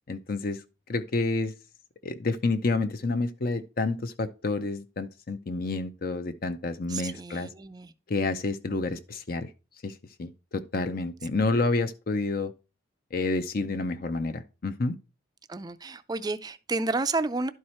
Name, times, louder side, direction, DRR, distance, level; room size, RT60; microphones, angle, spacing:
voice 1, 0.1-0.6 0.9-1.5 2.0-7.5 8.1-9.5 9.8-12.5 13.1-14.9, left 3 dB, 45° left, 0.5 m, -29 dB
voice 2, 6.9-7.9 15.5-17.5, right 3 dB, 20° right, 0.4 m, -31 dB
11.5 x 4.7 x 4.3 m
head